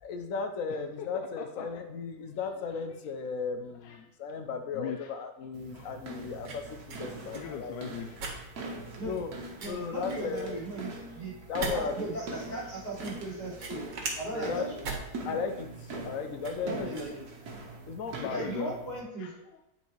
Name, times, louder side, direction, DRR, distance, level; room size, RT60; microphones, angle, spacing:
voice 1, 0.0-7.7 9.0-9.3 9.6-10.6 11.5-12.0 14.3-14.7 15.2-16.9 17.9-18.4, left 5 dB, 55° left, 7 dB, 1.1 m, -35 dB
voice 2, 1.0-1.7 2.7-2.8 3.8-4.0 4.7-5.1 5.7-5.9 7.1-8.3 8.6-9.0 9.8-9.9 11.1-11.5 16.0-16.1 17.5-17.8 18.2-18.7 19.2-19.6, left 9 dB, 90° left, 5 dB, 1.3 m, -42 dB
sound 1, 5.5-19.0, right 2 dB, 60° right, 1.7 m, -43 dB
sound 2, 5.7-17.8, right 3 dB, 85° right, 2.1 m, -42 dB
voice 3, 9.6-11.3 11.6-13.8 14.1-14.8 16.6-17.2 18.3-19.3, right 2 dB, 25° left, -7 dB, 3.4 m, -37 dB
8.6 x 4.6 x 4.6 m, 0.87 s
omnidirectional pair, 1.9 m